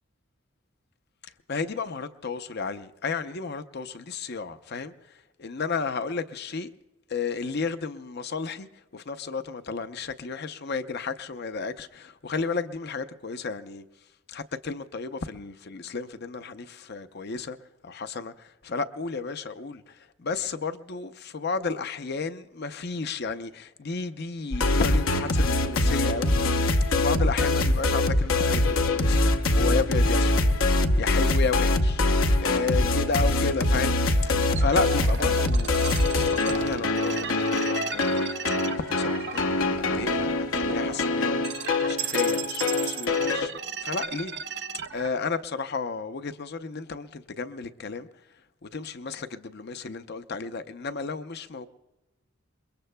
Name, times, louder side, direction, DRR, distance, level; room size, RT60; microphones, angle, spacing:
voice 1, 1.2-6.7 7.1-13.9 14.3-17.6 17.8-26.4 26.9-30.4 31.0-32.0 32.4-34.0 34.2-35.7 36.1-43.5 43.8-44.3 44.9-48.1 48.6-51.7, left 4 dB, 55° left, 0.6 m, -32 dB
sound 1, 24.5-43.5, left 2 dB, 75° left, 0.9 m, -24 dB
sound 2, 34.4-45.1, right 7 dB, 55° right, 0.6 m, -36 dB
27.5 x 22.0 x 2.2 m
head